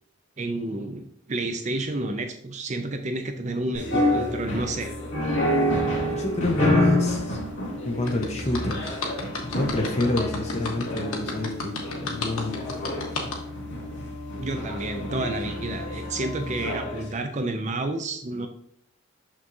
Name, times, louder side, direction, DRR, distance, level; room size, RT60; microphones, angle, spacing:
voice 1, 0.4-4.9 14.4-18.5, right 2 dB, 35° right, 7 dB, 0.5 m, -30 dB
sound 1, 3.7-17.0, left 1 dB, 60° left, 2.2 m, -28 dB
voice 2, 5.7-7.4 7.8-9.0 9.5-12.5, left 1 dB, 30° left, 3 dB, 0.9 m, -28 dB
sound 2, 8.1-13.4, left 3 dB, 85° left, 1.3 m, -32 dB
6.1 x 6.1 x 2.7 m, 0.68 s
head